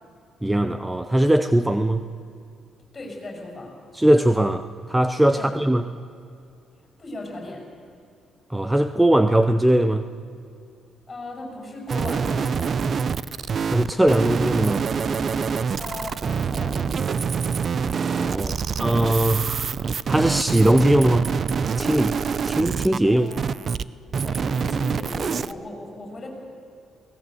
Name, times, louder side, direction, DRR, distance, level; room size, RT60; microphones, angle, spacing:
voice 1, 0.4-2.0 3.9-5.8 8.5-10.0 13.6-14.8 18.0-19.8 20.1-21.3 21.8-22.2 22.4-23.4, right 1 dB, 10° right, 11 dB, 0.7 m, -20 dB
voice 2, 2.9-3.7 5.3-5.5 7.0-7.6 11.1-12.8 15.8-17.2 23.0-23.6 24.2-26.3, left 1 dB, 30° left, 2 dB, 7.8 m, -37 dB
sound 1, 11.9-23.8 24.1-25.5, right 6 dB, 50° right, 0.6 m, -25 dB
21.5 x 18.5 x 8.1 m, 2.5 s
cardioid pair, 90°, 0 cm